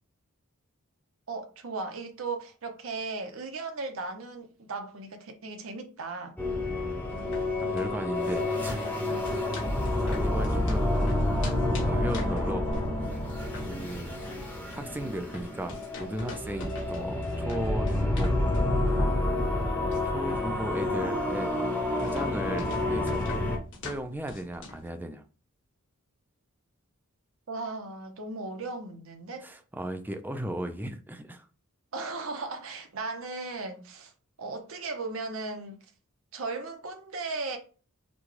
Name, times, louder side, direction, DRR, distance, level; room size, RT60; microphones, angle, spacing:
voice 1, 1.3-6.4 27.5-29.5 31.9-34.1 34.4-35.8 36.3-37.6, right 3 dB, 65° right, 0.8 m, -36 dB
sound 1, 6.4-23.6, left 1 dB, 10° left, 0.8 m, -29 dB
voice 2, 6.7-7.1 7.6-9.5 10.0-10.9 11.8-12.6 13.6-14.2 14.7-18.3 20.1-21.5 22.0-23.3 23.8-25.2 29.4-31.5, right 1 dB, 10° right, 0.4 m, -36 dB
sound 2, 7.1-24.9, left 1 dB, 60° left, 1.5 m, -44 dB
6.0 x 2.3 x 3.2 m
head